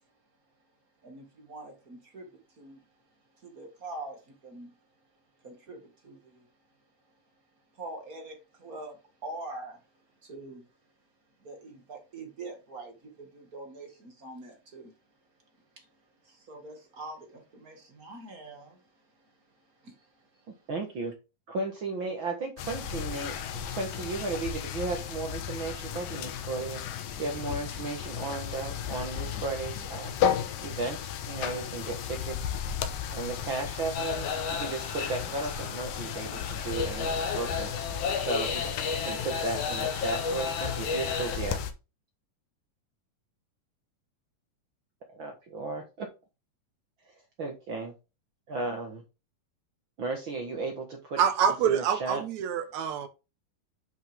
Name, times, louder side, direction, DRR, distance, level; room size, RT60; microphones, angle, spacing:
voice 1, 1.0-2.8 3.4-4.7 5.4-6.5 7.7-9.8 10.2-10.6 11.4-14.9 15.7-15.9 16.2-19.3 19.8-20.5, right 2 dB, 35° right, 1.7 m, -44 dB
voice 2, 20.7-21.1 21.5-30.2 30.6-32.5 33.1-37.7 38.1-38.6 39.0-41.6 45.1-46.1 47.4-47.9 48.5-49.0 50.0-51.2 51.6-52.2, right 3 dB, 55° right, 1.5 m, -35 dB
sound 1, 22.6-41.7, left 8 dB, 80° left, 2.6 m, -35 dB
sound 2, 33.9-41.4, left 5 dB, 60° left, 2.2 m, -33 dB
voice 3, 51.2-53.1, right 8 dB, 70° right, 2.0 m, -26 dB
8.5 x 5.5 x 3.4 m
omnidirectional pair, 3.8 m